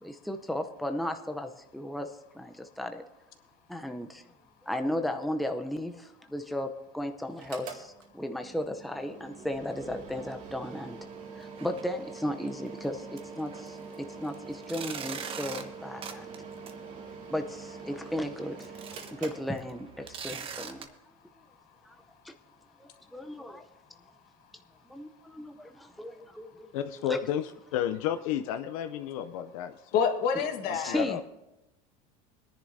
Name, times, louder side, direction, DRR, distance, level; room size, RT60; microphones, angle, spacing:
voice 1, 0.0-3.0 3.7-4.2 4.7-11.0 11.4-13.8 14.2-16.3 17.3-20.9 21.8-21.9 22.2-22.3 22.8-23.6 24.9-26.7 27.0-27.2 30.8-31.2, left 1 dB, ahead, 5 dB, 0.7 m, -35 dB
Mechanical fan, 7.3-20.1, right 5 dB, 50° right, 2.3 m, -45 dB
sound 1, 11.4-11.8 12.2-12.3 12.8-12.9 13.2-20.8, right 6 dB, 30° right, 1.1 m, -44 dB
voice 2, 26.7-29.8 30.7-31.2, left 10 dB, 85° left, 10 dB, 0.6 m, -32 dB
voice 3, 29.9-31.0, left 7 dB, 60° left, 6 dB, 1.5 m, -27 dB
21.5 x 10.5 x 2.7 m, 0.94 s
supercardioid pair, 125°, 17 cm